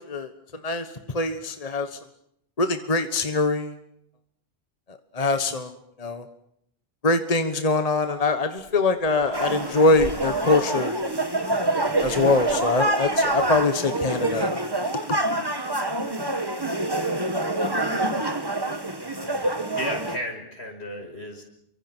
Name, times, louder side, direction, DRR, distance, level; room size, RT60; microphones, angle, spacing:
voice 1, 1.1-2.0 2.6-3.7 5.1-5.7 6.0-6.2 7.0-11.0 11.4-11.6 12.0-14.5 15.1-15.2, left 3 dB, 35° left, 9 dB, 1.4 m, -23 dB
Human voice, 8.7-8.8 9.0-11.0 11.9-13.6, right 2 dB, 70° right, 3.2 m, -39 dB
sound 1, 9.3-20.2, right 1 dB, 20° right, 1.8 m, -26 dB
voice 2, 19.2-21.4, equal, 80° left, 4 dB, 5.6 m, -34 dB
28.5 x 24.5 x 6.2 m, 0.75 s
omnidirectional pair, 1.1 m